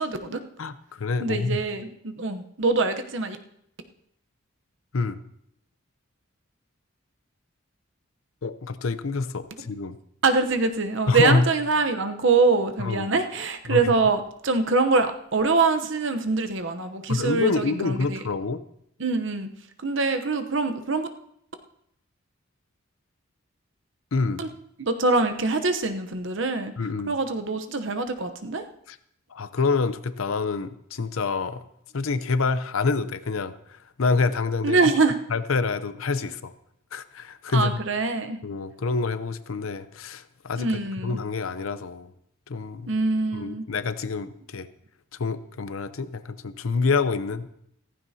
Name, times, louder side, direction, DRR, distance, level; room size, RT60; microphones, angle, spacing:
voice 1, 0.0-0.4 1.2-3.4 9.6-9.7 10.2-18.2 19.0-19.5 19.8-21.1 24.4-24.5 24.8-26.7 27.1-28.6 34.6-35.2 37.5-38.4 40.6-41.2 42.9-43.6, right 3 dB, 65° right, 8 dB, 0.9 m, -24 dB
voice 2, 0.6-1.6 4.9-5.2 8.4-10.0 11.1-11.4 12.8-13.1 13.7-13.9 17.1-18.6 24.1-24.5 26.8-27.2 28.9-29.0 29.3-31.6 31.9-34.8 35.3-36.5 36.9-37.7 38.4-40.7 41.0-42.1 42.5-42.9 43.3-44.7 45.2-47.5, left 4 dB, 80° left, 12 dB, 0.7 m, -27 dB
15.0 x 14.5 x 2.8 m, 0.74 s
head